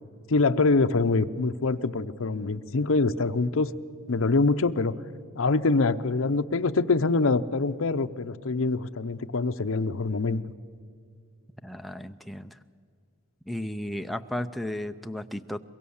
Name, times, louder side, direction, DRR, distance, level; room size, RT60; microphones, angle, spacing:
voice 1, 0.3-3.7 4.1-4.9 5.4-10.4, left 3 dB, 65° left, 9 dB, 0.7 m, -24 dB
voice 2, 11.6-12.6 13.5-15.6, left 1 dB, ahead, 7 dB, 0.5 m, -34 dB
23.5 x 22.5 x 7.1 m, 2.2 s
head